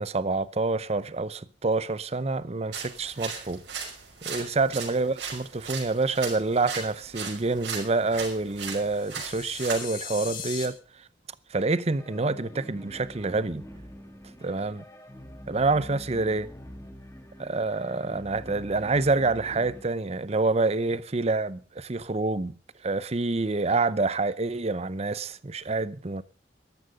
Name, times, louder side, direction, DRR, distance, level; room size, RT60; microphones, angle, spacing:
voice 1, 0.0-3.6 4.2-10.8 11.5-13.6 14.4-14.8 15.5-16.5 17.4-22.6 22.8-26.2, right 3 dB, 35° right, 0.7 m, -27 dB
sound 1, 2.7-9.8, right 5 dB, 70° right, 5.8 m, -38 dB
sound 2, 8.8-10.7, left 7 dB, 50° left, 2.9 m, -38 dB
sound 3, 12.0-19.8, equal, 15° left, 1.7 m, -45 dB
13.0 x 13.0 x 5.2 m
head